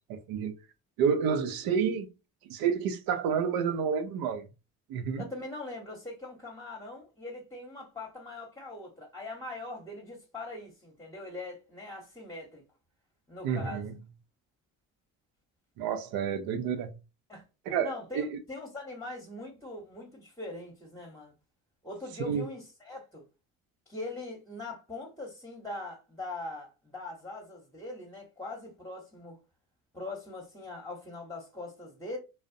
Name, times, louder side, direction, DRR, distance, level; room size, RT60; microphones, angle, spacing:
voice 1, 0.3-0.6 1.0-2.1 2.5-4.4 4.9-5.2 13.4-13.9 15.8-16.9 17.7-18.4 22.3-22.5, right 7 dB, 75° right, 0.6 m, -29 dB
voice 2, 5.2-12.6 13.3-13.9 17.3-17.4 17.8-21.3 21.8-23.2 23.9-29.4 29.9-32.2, left 2 dB, 10° left, 0.9 m, -41 dB
2.4 x 2.1 x 2.5 m
supercardioid pair, 65°, 36 cm